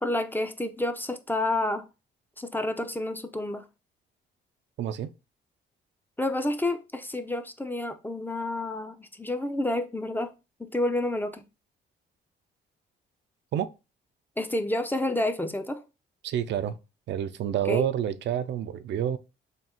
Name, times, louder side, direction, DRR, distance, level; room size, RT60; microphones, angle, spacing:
voice 1, 0.0-1.9 2.4-3.6 6.2-10.3 10.6-11.4 14.4-15.8 17.7-17.8, left 1 dB, 10° left, 0.5 m, -29 dB
voice 2, 4.8-5.1 13.5-13.7 16.2-16.8 17.1-19.2, right 10 dB, 65° right, 0.4 m, -28 dB
3.7 x 2.3 x 4.2 m
cardioid pair, 90°, 20 cm